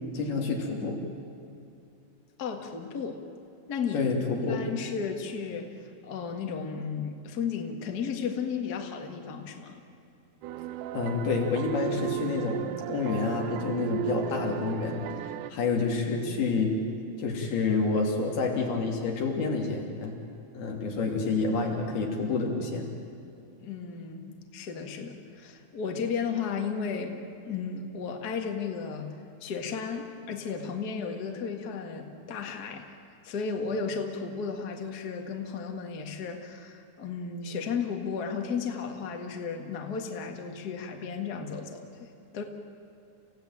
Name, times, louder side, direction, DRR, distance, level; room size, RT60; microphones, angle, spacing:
voice 1, 0.1-1.0 3.9-4.6 10.9-15.2 15.5-16.7 17.2-20.1 20.5-22.9, left 4 dB, 90° left, 0 dB, 4.9 m, -28 dB
voice 2, 2.4-3.2 3.7-4.1 4.5-5.7 6.0-9.8 23.6-29.1 29.4-32.8 33.2-42.4, left 6 dB, 35° left, 3 dB, 1.6 m, -34 dB
sound 1, 10.4-15.5, right 11 dB, 80° right, 1.9 m, -35 dB
29.0 x 16.5 x 9.1 m, 2.6 s
omnidirectional pair, 4.3 m